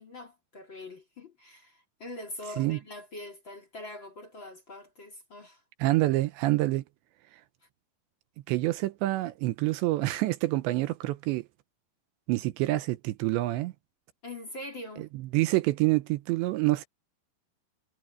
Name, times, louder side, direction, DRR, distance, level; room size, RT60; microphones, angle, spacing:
voice 1, 0.0-5.6 14.2-15.1, left 1 dB, 30° left, 2.6 m, -43 dB
voice 2, 5.8-6.8 8.5-11.5 12.3-13.7 15.0-15.1 15.3-16.9, right 18 dB, 80° right, 2.9 m, -27 dB
omnidirectional pair, 5.4 m